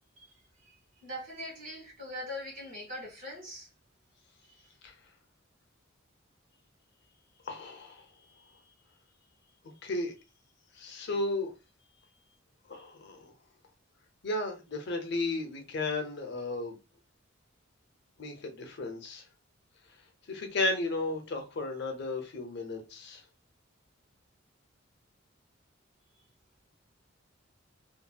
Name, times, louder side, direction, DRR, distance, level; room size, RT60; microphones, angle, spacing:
voice 1, 1.0-3.7, left 1 dB, 45° right, 1.5 m, -41 dB
voice 2, 7.5-8.0 9.8-10.1 10.7-11.5 12.7-13.3 14.2-16.8 18.2-19.2 20.3-23.2, left 2 dB, 55° left, 0.6 m, -34 dB
2.7 x 2.6 x 2.2 m
head